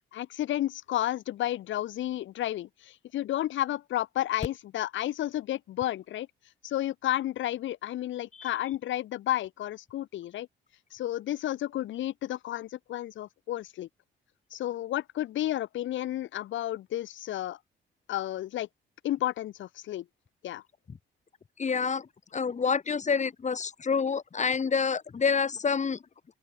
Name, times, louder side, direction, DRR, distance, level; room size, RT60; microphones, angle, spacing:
voice 1, 0.1-6.3 6.6-10.5 10.9-13.9 14.5-17.6 18.1-18.7 19.0-20.0 20.4-20.6, left 13 dB, 75° left, 1.1 m, -32 dB
voice 2, 21.6-22.1 22.3-26.0, left 5 dB, 35° left, 2.3 m, -27 dB
open air
cardioid pair, 90°, 20 cm